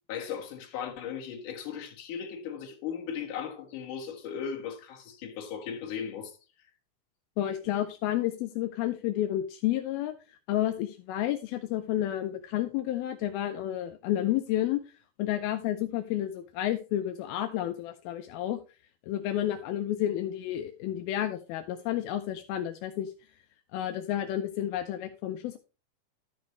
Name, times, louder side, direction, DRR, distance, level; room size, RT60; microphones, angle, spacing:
voice 1, 0.1-6.4, left 7 dB, 65° left, 3.0 m, -37 dB
voice 2, 7.4-10.1 10.5-14.8 15.2-18.6 19.1-23.1 23.7-25.6, left 12 dB, 85° left, 2.5 m, -31 dB
12.0 x 6.5 x 3.1 m
omnidirectional pair, 4.3 m